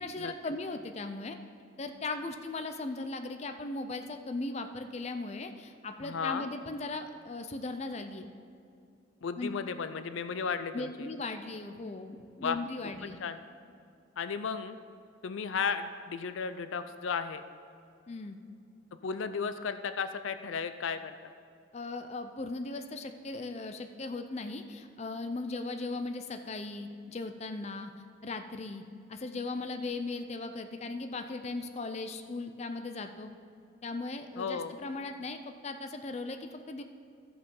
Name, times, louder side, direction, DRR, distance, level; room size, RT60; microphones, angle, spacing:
voice 1, 0.0-1.4 1.8-8.3 9.4-9.5 10.7-13.2 18.1-18.4 21.7-27.9 28.2-28.8 29.1-33.3 33.8-36.8, left 3 dB, 35° left, 7 dB, 0.5 m, -38 dB
voice 2, 6.0-6.5 9.2-11.1 12.4-12.6 13.2-13.4 14.2-14.8 15.2-17.4 19.0-21.3 34.4-34.7, left 6 dB, 85° left, 11 dB, 0.5 m, -34 dB
13.5 x 5.4 x 5.4 m, 2.4 s
head